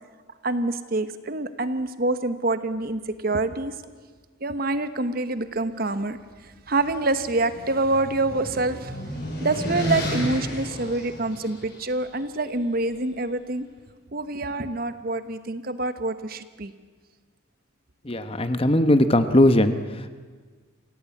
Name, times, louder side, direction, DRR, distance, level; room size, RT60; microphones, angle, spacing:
voice 1, 0.4-3.7 4.4-6.2 6.4-9.0 9.4-13.7 14.1-16.7, right 2 dB, 45° right, 11 dB, 1.1 m, -26 dB
sound 1, 6.7-11.9, equal, 55° left, 6.3 m, -32 dB
voice 2, 18.0-20.1, left 1 dB, 30° left, 10 dB, 1.1 m, -19 dB
27.5 x 17.0 x 8.5 m, 1.5 s
head